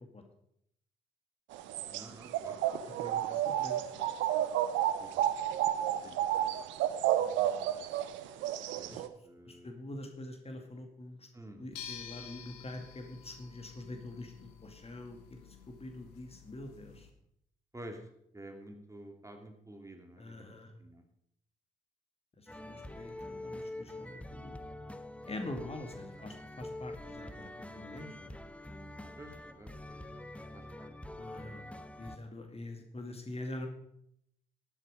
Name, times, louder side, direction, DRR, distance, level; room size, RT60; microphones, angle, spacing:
sound 1, 1.5-9.1, right 12 dB, 75° right, 0.8 m, -31 dB
voice 1, 1.9-2.6 5.0-5.2 6.0-6.6 8.8-9.7 11.3-11.6 17.7-18.0 18.3-20.5 20.8-21.0 25.5-25.7 29.2-31.7, right 1 dB, 15° right, 4 dB, 2.7 m, -51 dB
voice 2, 3.0-4.1 7.2-8.0 8.9-9.0 9.5-11.3 11.6-17.1 20.2-20.7 22.4-24.6 25.3-28.3 31.2-31.6 32.0-33.7, left 2 dB, 30° left, 5 dB, 2.4 m, -45 dB
sound 2, 11.7-17.1, left 8 dB, 85° left, 1.2 m, -50 dB
sound 3, 22.5-32.2, left 1 dB, 5° left, 1.2 m, -45 dB
12.0 x 10.5 x 5.1 m, 0.73 s
hypercardioid pair, 40°, 20 cm